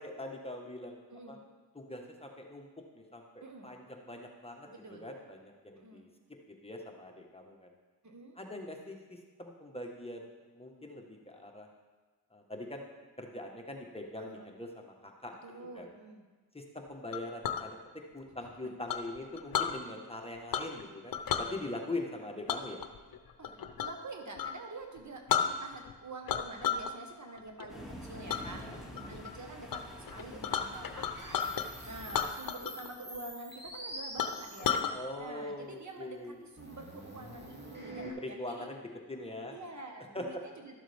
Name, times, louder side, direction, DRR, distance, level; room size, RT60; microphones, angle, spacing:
voice 1, 0.0-1.0 1.3-1.4 1.7-2.7 2.9-6.1 6.5-7.7 8.4-11.7 12.3-12.9 13.2-15.4 15.8-15.9 16.5-22.8 28.6-28.8 34.9-36.4 38.0-38.8 39.1-39.5 40.1-40.3, left 1 dB, 15° left, 1 dB, 1.4 m, -42 dB
voice 2, 3.4-3.7 4.7-5.0 5.8-6.1 8.0-8.4 14.2-14.5 15.4-16.2 23.4-28.6 29.1-34.8 35.2-38.7 39.5-40.8, right 2 dB, 45° right, 2 dB, 1.6 m, -47 dB
Chink clink, 17.1-17.7 18.9-19.7 20.5-20.8 21.1-21.5 22.5-24.0 24.3-24.5 25.0-25.1 25.3-25.9 26.3-26.9 27.3-27.7 28.3-28.4 28.9-29.3 29.7-29.8 30.1-31.7 32.1-32.9 33.1-33.2 33.7-33.8 34.2-34.9, left 8 dB, 55° left, 0.8 m, -33 dB
Thunder, 27.7-32.3, equal, ahead, 2.4 m, -47 dB
sound 1, 31.1-35.0 36.6-38.1, right 1 dB, 25° right, 2.5 m, -46 dB
12.5 x 7.3 x 3.6 m, 1.3 s
cardioid pair, 55°, 39 cm